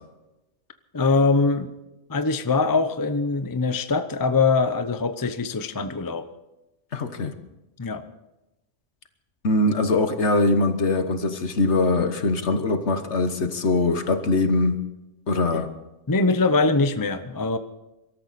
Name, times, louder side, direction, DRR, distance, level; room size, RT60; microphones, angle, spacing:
voice 1, 0.9-1.7 2.1-6.3 7.8-8.0 16.1-17.6, left 3 dB, 20° left, 10 dB, 0.6 m, -22 dB
voice 2, 6.9-7.3 9.4-14.8 15.3-15.7, left 2 dB, 65° left, 8 dB, 1.5 m, -22 dB
24.0 x 13.5 x 4.2 m, 0.97 s
omnidirectional pair, 1.3 m